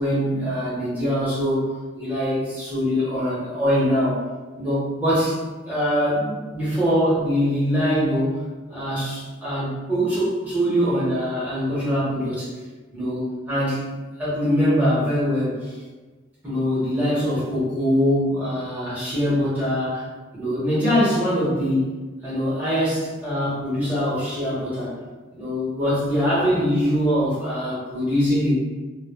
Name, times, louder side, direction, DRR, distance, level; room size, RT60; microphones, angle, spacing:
voice 1, 0.0-1.6 2.0-4.2 4.6-5.4 5.7-8.4 8.7-12.5 12.9-13.8 14.2-15.8 16.4-20.0 20.3-21.9 22.2-24.9 25.3-28.5, equal, 10° right, -10 dB, 1.0 m, -23 dB
2.1 x 2.1 x 3.3 m, 1.3 s
head